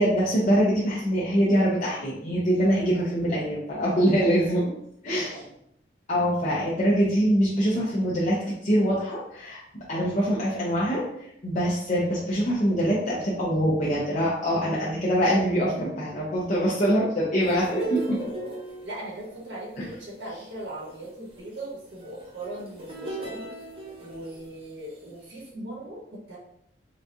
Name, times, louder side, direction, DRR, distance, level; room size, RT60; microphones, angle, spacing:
voice 1, 0.0-4.7 5.0-5.4 6.1-9.6 9.9-18.2 19.8-19.9, equal, 45° left, -8 dB, 0.6 m, -24 dB
voice 2, 5.1-5.5 18.0-18.6 18.8-23.5 24.0-26.4, right 1 dB, 90° right, -4 dB, 1.3 m, -39 dB
sound 1, 17.4-24.7 25.3-25.5, right 2 dB, 30° right, 0.7 m, -38 dB
3.9 x 2.3 x 2.6 m, 0.75 s
head